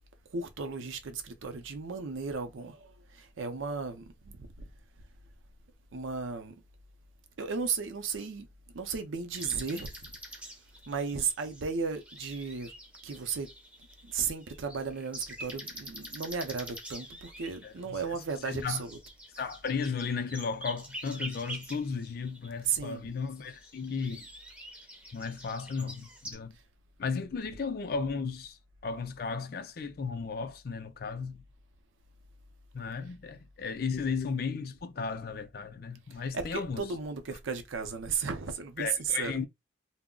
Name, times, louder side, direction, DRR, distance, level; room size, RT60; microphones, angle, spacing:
voice 1, 0.3-4.5 5.9-6.6 7.4-8.5 8.7-10.4 10.9-12.7 13.0-13.5 14.0-19.0 22.6-23.1 27.5-27.6 36.3-39.4, right 5 dB, 80° right, 0.5 m, -35 dB
sound 1, 9.3-22.5 23.3-26.3, right 1 dB, 5° right, 0.5 m, -46 dB
voice 2, 17.6-18.0 18.4-18.8 19.4-24.3 25.1-26.5 27.0-31.4 32.7-36.8 38.8-39.5, left 5 dB, 50° left, 0.4 m, -35 dB
2.3 x 2.0 x 3.6 m
head